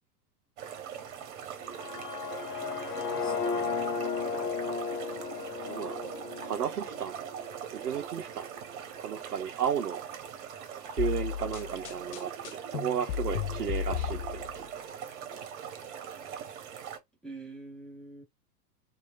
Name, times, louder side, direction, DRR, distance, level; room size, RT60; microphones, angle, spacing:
sound 1, 0.6-17.0, right 8 dB, 50° right, 0.9 m, -41 dB
sound 2, 1.6-7.6, left 5 dB, 85° left, 0.7 m, -35 dB
voice 1, 2.6-3.9 17.2-18.2, right 3 dB, ahead, 0.7 m, -47 dB
voice 2, 5.6-6.0 6.4-7.1 7.7-8.5 9.0-10.0 10.9-14.8, right 8 dB, 85° right, 0.5 m, -33 dB
sound 3, 11.0-14.7, left 9 dB, 50° left, 0.5 m, -34 dB
2.9 x 2.4 x 2.3 m
figure-of-eight pair, 90°, 46 cm